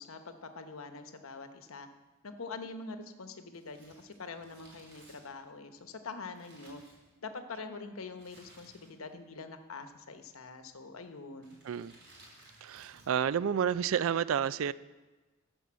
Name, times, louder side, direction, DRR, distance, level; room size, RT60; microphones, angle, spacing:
voice 1, 0.0-1.9 2.2-6.8 7.2-11.6, left 4 dB, 85° left, 8 dB, 0.9 m, -44 dB
Crumpling crinkling, 3.5-7.5 8.1-9.2 9.4-9.5 10.3-10.7 11.4-13.3 13.5-13.6, right 1 dB, 55° right, 4.6 m, -59 dB
voice 2, 11.6-12.0 12.6-14.7, right 8 dB, 75° right, 18 dB, 0.4 m, -30 dB
13.0 x 5.3 x 7.4 m, 1.2 s
head